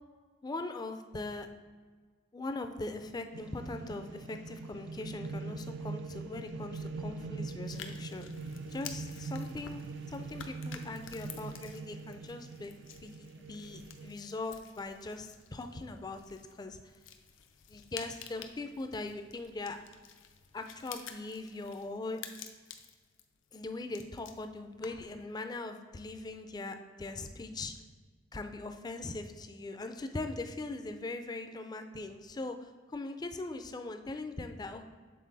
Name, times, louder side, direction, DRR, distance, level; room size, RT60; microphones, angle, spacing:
voice 1, 0.4-1.5 2.3-8.3 8.7-9.8 10.1-12.7 13.0-16.8 17.7-19.8 20.5-22.2 23.5-27.7 28.3-34.9, left 2 dB, 20° left, 7 dB, 0.4 m, -40 dB
sound 1, 3.3-14.1, right 3 dB, 60° right, 0.3 m, -42 dB
sound 2, 7.7-25.2, left 7 dB, 75° left, 0.5 m, -51 dB
7.4 x 4.0 x 4.0 m, 1.5 s
head